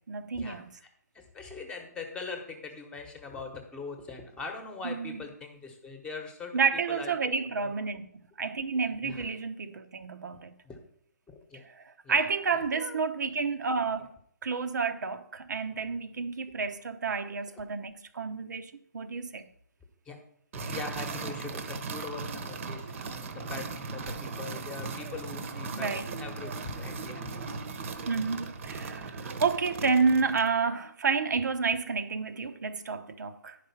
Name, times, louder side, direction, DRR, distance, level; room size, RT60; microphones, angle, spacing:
voice 1, 0.1-0.7 4.8-5.2 6.5-8.1 8.4-10.6 11.6-14.1 14.4-19.5 22.8-22.9 25.7-26.1 28.1-33.6, right 5 dB, 70° right, 0.8 m, -30 dB
voice 2, 1.1-6.6 6.9-7.7 9.0-9.2 10.6-10.8 11.3-11.6 12.0-12.3 12.7-13.0 20.0-20.2 20.5-27.3, left 4 dB, 10° left, 1.1 m, -42 dB
sound 1, 20.5-30.6, right 4 dB, 45° right, 1.0 m, -38 dB
10.0 x 5.0 x 5.8 m
hypercardioid pair, 150°, 10 cm